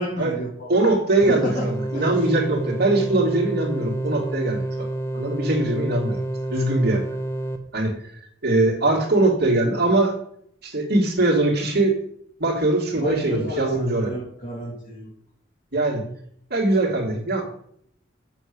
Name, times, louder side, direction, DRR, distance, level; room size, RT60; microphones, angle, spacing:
voice 1, 0.0-0.8 1.3-1.6 1.9-2.2 13.0-15.1, equal, 45° left, -8 dB, 3.2 m, -30 dB
voice 2, 0.7-4.9 5.1-6.2 6.5-7.0 7.7-7.9 8.4-10.1 10.6-12.0 12.4-14.1 15.7-16.0 16.5-17.5, right 2 dB, 60° right, -1 dB, 2.8 m, -21 dB
sound 1, 1.2-7.6, right 1 dB, 15° left, 1.1 m, -29 dB
7.6 x 6.7 x 8.1 m, 0.68 s
head